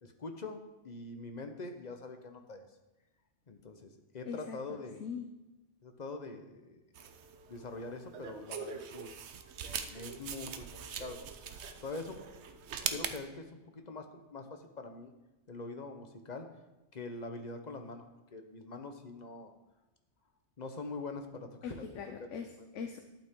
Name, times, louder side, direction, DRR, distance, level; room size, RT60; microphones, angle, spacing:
voice 1, 0.0-2.6 3.5-5.0 5.8-6.8 7.5-9.1 9.6-10.6 11.0-11.2 11.8-12.2 12.9-15.1 15.5-16.5 16.9-18.1 18.3-19.5 20.6-21.8 22.6-22.7, left 3 dB, 40° left, 6 dB, 1.0 m, -44 dB
voice 2, 4.3-5.3 21.6-23.0, left 6 dB, 85° left, 5 dB, 1.1 m, -42 dB
sound 1, 7.0-13.2, right 7 dB, 70° right, 1.0 m, -42 dB
12.0 x 8.4 x 3.7 m, 1.0 s
omnidirectional pair, 1.2 m